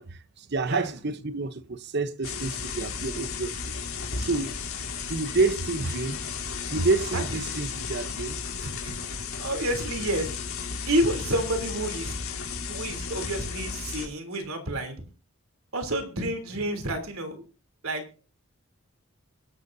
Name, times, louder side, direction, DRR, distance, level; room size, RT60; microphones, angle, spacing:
voice 1, 0.0-3.7 4.2-4.6 5.1-6.2 6.7-8.4, right 3 dB, 50° right, 0.9 m, -28 dB
sound 1, 2.2-14.1, left 5 dB, 85° left, 3.4 m, -34 dB
voice 2, 8.6-8.9 9.4-10.3 10.9-12.2 12.7-15.0 15.7-17.4 17.8-18.0, right 1 dB, 80° right, 3.2 m, -29 dB
23.0 x 12.5 x 2.7 m
head